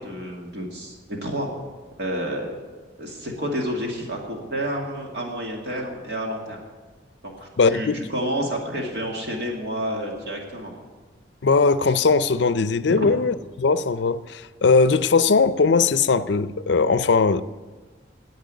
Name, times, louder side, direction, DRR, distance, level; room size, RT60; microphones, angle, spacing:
voice 1, 0.0-1.5 2.0-2.6 3.0-6.6 7.2-10.7 13.0-13.1, equal, 60° right, 2.3 m, -29 dB
voice 2, 7.6-8.0 11.4-17.4, left 4 dB, 70° left, 0.5 m, -19 dB
10.5 x 8.5 x 9.4 m
head